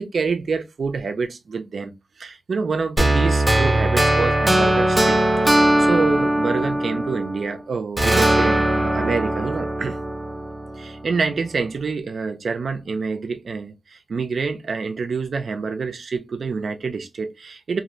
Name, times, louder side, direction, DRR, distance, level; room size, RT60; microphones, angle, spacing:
voice 1, 0.0-1.9 2.2-5.2 5.4-10.0 10.8-17.8, right 4 dB, 65° right, 0.5 m, -27 dB
sound 1, 3.0-7.5 8.0-11.0, right 1 dB, 10° right, 0.7 m, -20 dB
2.5 x 2.5 x 3.0 m
wide cardioid pair, 110°, 0 cm